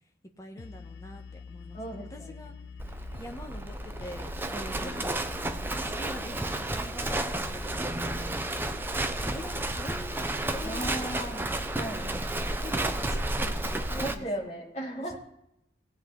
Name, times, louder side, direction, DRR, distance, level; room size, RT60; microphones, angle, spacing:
voice 1, 0.4-1.8 2.1-2.5 3.2-4.3 4.8-5.1 5.6-8.7 9.2-11.4 12.6-14.5 15.0-15.2, left 1 dB, 15° left, 3 dB, 1.4 m, -44 dB
sound 1, 0.6-14.3, left 5 dB, 65° left, 0.5 m, -46 dB
voice 2, 1.7-2.3 4.5-5.0 10.6-11.5 11.7-12.4 13.9-15.2, right 1 dB, 35° left, -4 dB, 3.7 m, -37 dB
Livestock farm animals working animals, 2.8-14.1, right 1 dB, 10° right, 0.7 m, -32 dB
18.5 x 8.3 x 4.0 m, 0.77 s
head